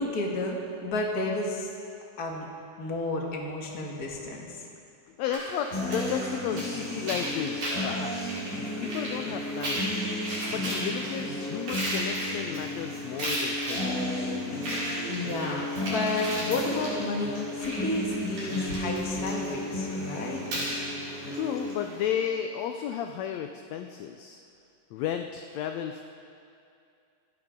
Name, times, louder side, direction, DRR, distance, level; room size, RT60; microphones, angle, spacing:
voice 1, 0.0-1.7 2.2-2.5 2.8-4.7 14.5-20.4, left 2 dB, 35° left, -1 dB, 1.7 m, -32 dB
voice 2, 5.2-10.0 10.5-14.4 21.3-24.4 24.9-26.0, left 9 dB, 80° left, 6 dB, 1.6 m, -33 dB
sound 1, 5.3-22.1, right 1 dB, 80° right, 6.1 m, -36 dB
sound 2, 5.7-21.7, left 1 dB, 55° left, 5.7 m, -34 dB
26.0 x 11.0 x 3.7 m, 2.5 s
omnidirectional pair, 3.6 m